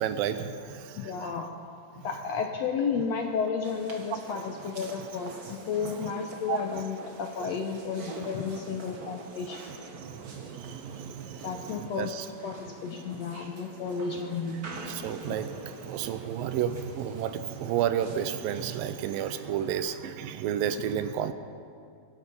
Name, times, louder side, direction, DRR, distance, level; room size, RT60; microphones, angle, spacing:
voice 1, 0.0-0.8 1.2-1.3 5.8-6.1 6.5-6.6 9.7-12.3 14.9-15.6 15.8-21.3, right 9 dB, 85° right, 11 dB, 2.5 m, -32 dB
voice 2, 1.0-1.5 2.0-9.6 11.4-12.2 12.4-14.6 15.3-15.4, left 5 dB, 75° left, 3 dB, 1.6 m, -32 dB
sound 1, 3.6-19.8, right 3 dB, 50° right, 1.0 m, -46 dB
24.0 x 11.0 x 5.4 m, 2.3 s
omnidirectional pair, 4.0 m